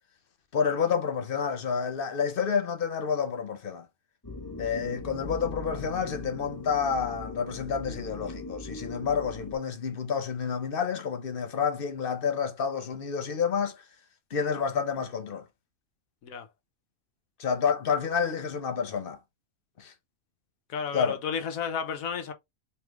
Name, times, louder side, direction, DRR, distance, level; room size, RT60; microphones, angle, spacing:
voice 1, 0.5-3.8 4.6-13.8 14.3-15.4 17.4-19.2 19.8-19.9 20.9-21.2, left 6 dB, 50° left, 0.8 m, -29 dB
sound 1, 4.2-9.6, left 2 dB, 15° left, 1.2 m, -40 dB
voice 2, 20.7-22.3, left 7 dB, 75° left, 1.3 m, -32 dB
3.3 x 3.2 x 3.4 m
omnidirectional pair, 1.5 m